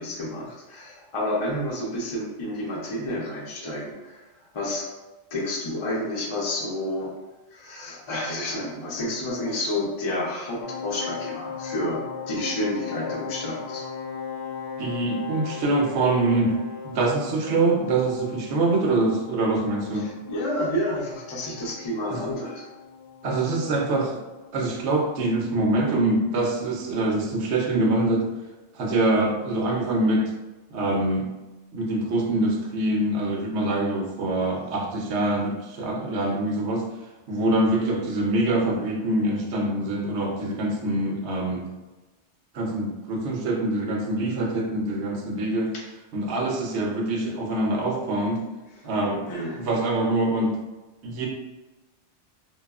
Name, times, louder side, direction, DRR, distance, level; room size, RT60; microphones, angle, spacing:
voice 1, 0.0-4.9 5.3-7.1 7.5-13.9 19.9-22.7 49.3-49.7, left 1 dB, 40° left, -3 dB, 0.5 m, -30 dB
sound 1, 10.6-26.2 26.5-26.7, left 7 dB, 70° left, 0.8 m, -39 dB
Wind instrument woodwind instrument, 13.6-17.3, left 2 dB, 20° right, 0.5 m, -40 dB
voice 2, 14.8-16.5 16.8-20.1 22.1-22.2 23.2-24.2 24.5-28.3 28.7-30.2 30.7-31.3 31.7-36.8 37.3-41.7 42.5-45.7 46.1-48.4 48.8-49.3 49.6-50.6 51.0-51.3, right 2 dB, 70° right, 0 dB, 0.8 m, -24 dB
2.8 x 2.3 x 2.3 m, 1.1 s
omnidirectional pair, 1.2 m